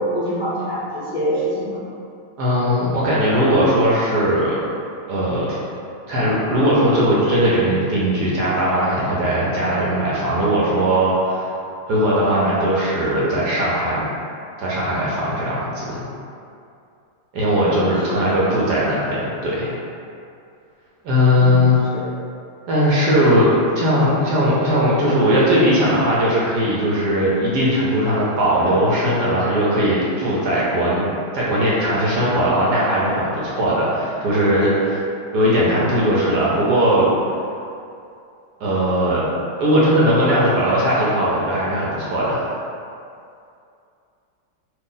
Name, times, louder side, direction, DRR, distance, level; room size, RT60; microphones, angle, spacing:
voice 1, 0.0-1.8 12.3-12.5 17.6-17.9 18.2-18.4 21.4-22.0, equal, 80° left, -13 dB, 0.4 m, -25 dB
voice 2, 2.4-4.5 5.1-5.6 6.1-11.5 11.9-14.0 14.6-16.0 17.3-19.7 21.0-21.8 22.7-35.0 35.3-37.3 38.6-39.3 39.6-42.5, equal, 70° right, -7 dB, 1.0 m, -19 dB
2.9 x 2.6 x 3.8 m, 2.5 s
omnidirectional pair, 2.2 m